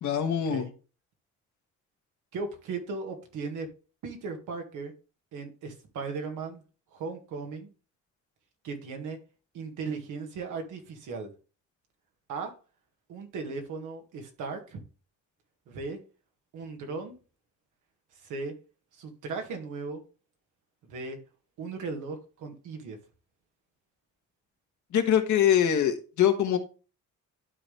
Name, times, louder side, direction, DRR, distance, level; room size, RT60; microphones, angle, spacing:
voice 1, 0.0-0.6 24.9-26.6, left 9 dB, 75° left, 5 dB, 1.6 m, -23 dB
voice 2, 2.3-3.7 4.0-4.9 5.3-6.6 6.9-7.7 8.6-9.2 9.5-11.3 12.3-12.5 13.1-14.8 15.7-16.0 16.5-17.1 18.2-18.6 18.9-20.0 20.8-21.2 21.6-23.0, right 4 dB, 85° right, 4 dB, 2.0 m, -37 dB
12.0 x 4.0 x 3.4 m, 0.34 s
cardioid pair, 90°, 30 cm